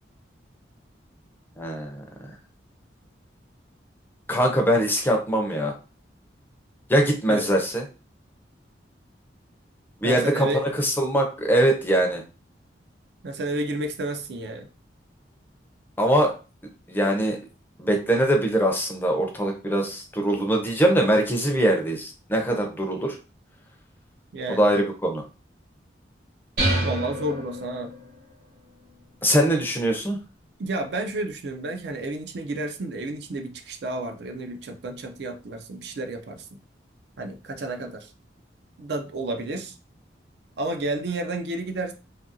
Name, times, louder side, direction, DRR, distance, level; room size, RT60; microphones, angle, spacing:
voice 1, 1.6-2.3 4.3-5.7 6.9-7.8 10.0-12.2 16.0-16.3 16.9-17.4 17.8-23.2 24.5-25.2 29.2-30.2, right 1 dB, 10° left, 2 dB, 0.4 m, -22 dB
voice 2, 10.0-10.7 13.2-14.7 24.3-24.7 26.8-27.9 30.6-36.5 37.2-38.1 38.8-39.7 40.6-41.9, right 2 dB, 65° right, 6 dB, 0.4 m, -31 dB
sound 1, 26.6-28.2, right 1 dB, 50° right, 1.1 m, -27 dB
2.7 x 2.4 x 2.6 m, 0.32 s
head